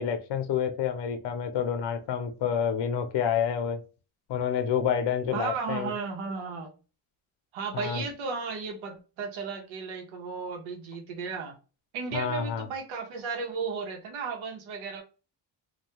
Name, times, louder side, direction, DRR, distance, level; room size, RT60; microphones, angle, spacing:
voice 1, 0.0-3.8 4.3-5.9 7.7-8.0 12.1-12.7, left 8 dB, 65° left, 0.7 m, -28 dB
voice 2, 5.3-6.7 7.5-11.6 11.9-15.0, right 5 dB, 90° right, 0.9 m, -34 dB
2.3 x 2.2 x 2.8 m
cardioid pair, 110°, 46 cm